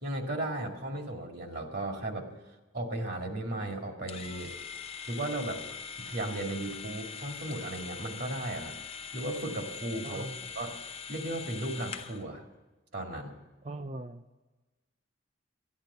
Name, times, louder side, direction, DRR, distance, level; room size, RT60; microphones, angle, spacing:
voice 1, 0.0-2.3 2.7-4.5 5.1-8.7 9.1-10.2 10.5-10.7 11.1-12.4 12.9-13.4, right 1 dB, 50° right, 3 dB, 2.0 m, -35 dB
sound 1, 4.1-12.2, left 6 dB, 30° left, 0.7 m, -42 dB
voice 2, 10.0-10.5 13.6-14.2, right 2 dB, 30° right, 7 dB, 0.5 m, -40 dB
13.0 x 10.5 x 6.7 m, 1.2 s
head